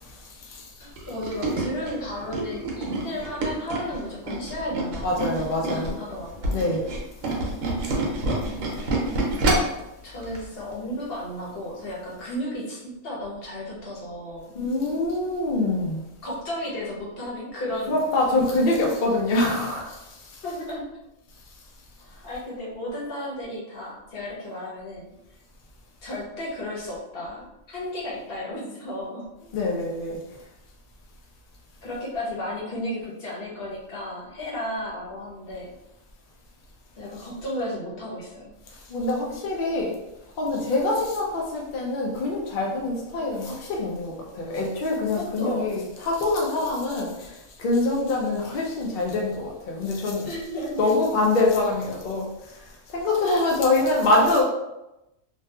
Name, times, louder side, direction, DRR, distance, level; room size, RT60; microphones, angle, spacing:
voice 1, 0.8-6.6 7.4-8.9 9.6-9.8 10.0-14.5 16.2-18.0 18.2-18.3 18.8-18.9 20.4-20.8 22.2-25.1 26.0-29.3 31.8-35.8 37.0-38.5 45.2-45.7 50.2-50.9 53.2-54.1, left 1 dB, 50° left, -4 dB, 0.9 m, -34 dB
Tools, 1.0-5.9 6.3-9.8 10.2-10.4 10.7-10.8, right 2 dB, 75° right, 1.0 m, -27 dB
voice 2, 5.0-6.0 6.5-6.9 14.5-16.0 17.9-20.0 29.5-30.2 38.9-39.9 40.4-47.3 47.6-50.3 50.8-52.3 52.9-54.4, left 2 dB, 70° left, -1 dB, 0.4 m, -24 dB
2.6 x 2.3 x 2.2 m, 0.92 s
omnidirectional pair, 1.4 m